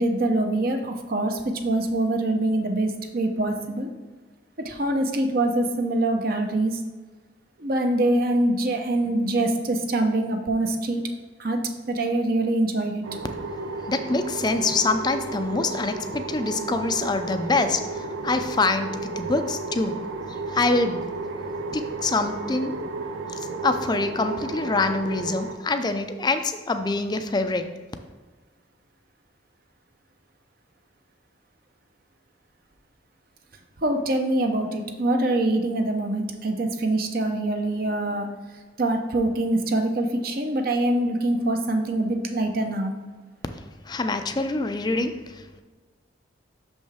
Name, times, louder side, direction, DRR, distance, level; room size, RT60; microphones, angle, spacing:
voice 1, 0.0-3.9 4.6-6.8 7.6-11.0 11.4-11.6 11.9-13.0 33.8-38.3 38.8-42.9, right 1 dB, 50° right, 5 dB, 0.7 m, -24 dB
sound 1, 13.0-25.5, right 3 dB, 90° right, 0.6 m, -33 dB
voice 2, 13.8-20.0 20.3-21.1 21.7-22.8 23.3-27.7 43.5-45.6, left 3 dB, 20° left, 8 dB, 0.4 m, -25 dB
6.5 x 5.3 x 3.5 m, 1.3 s
head